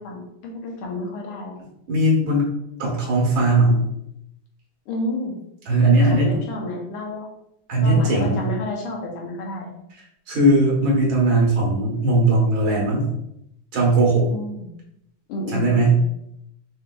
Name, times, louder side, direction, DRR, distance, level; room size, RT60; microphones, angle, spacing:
voice 1, 0.0-1.5 4.9-5.3 5.9-7.3 7.8-9.7 14.3-14.7 15.3-16.0, left 1 dB, 90° left, 0 dB, 1.7 m, -30 dB
voice 2, 1.9-2.5 2.8-3.8 5.7-6.3 7.7-8.5 10.3-13.1 13.7-14.3 15.5-16.0, right 2 dB, 70° right, -3 dB, 2.0 m, -18 dB
5.5 x 3.3 x 2.2 m, 0.80 s
omnidirectional pair, 2.4 m